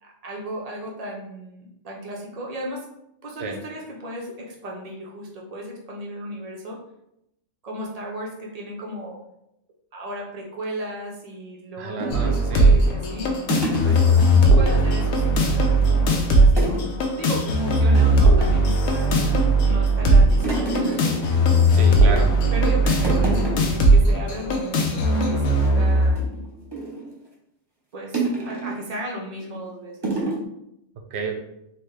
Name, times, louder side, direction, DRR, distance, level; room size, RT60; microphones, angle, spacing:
voice 1, 0.0-2.9 3.2-6.8 7.6-9.2 9.9-13.3 13.8-16.8 17.1-21.7 22.5-26.4 27.9-30.2, equal, 85° right, -2 dB, 0.3 m, -35 dB
voice 2, 11.8-12.8 21.7-22.4 31.1-31.4, right 4 dB, 65° right, 3 dB, 0.7 m, -30 dB
sound 1, 12.0-14.6 14.9-15.0 15.3-16.0 16.6-16.9 17.2-17.3 17.7-18.5 19.0-19.6 19.9-22.0 22.4-22.7 23.0-23.8 24.2-24.3 24.6-24.9 25.3-27.1 28.1-28.8 29.4-29.6 30.0-30.4, right 2 dB, 25° right, 0.6 m, -30 dB
sound 2, 12.1-26.1, right 1 dB, 85° left, 1.1 m, -18 dB
4.0 x 2.2 x 3.2 m, 0.81 s
omnidirectional pair, 1.5 m